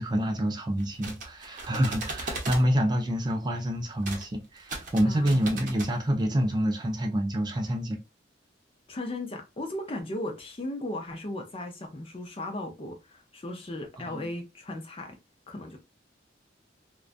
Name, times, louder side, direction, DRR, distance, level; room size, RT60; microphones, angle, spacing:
voice 1, 0.0-8.0 14.0-14.3, equal, 25° right, 0.4 m, -27 dB
sound 1, 0.8-2.7 4.0-4.3 4.6-5.9, right 2 dB, 45° right, 0.7 m, -37 dB
voice 2, 5.0-5.4 8.9-15.2 15.5-15.8, left 1 dB, 30° left, 0.5 m, -36 dB
2.4 x 2.2 x 2.4 m
head